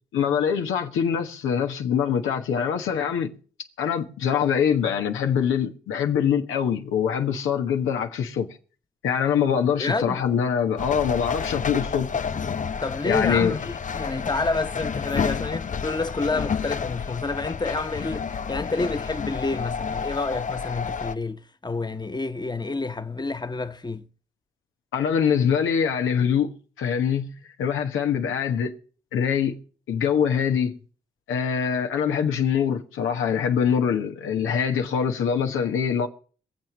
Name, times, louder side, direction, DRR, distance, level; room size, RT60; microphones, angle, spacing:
voice 1, 0.1-3.3 3.8-8.5 9.0-12.3 13.0-13.6 24.9-26.5 26.8-27.3 27.6-28.7 29.1-29.6 29.9-30.8 31.3-36.1, left 7 dB, 80° left, 1.4 m, -24 dB
voice 2, 9.8-10.2 12.8-24.0, left 3 dB, 20° left, 1.3 m, -29 dB
sound 1, 10.8-21.1, left 6 dB, 40° left, 0.7 m, -30 dB
22.0 x 7.4 x 6.1 m
hypercardioid pair, 40°, 20 cm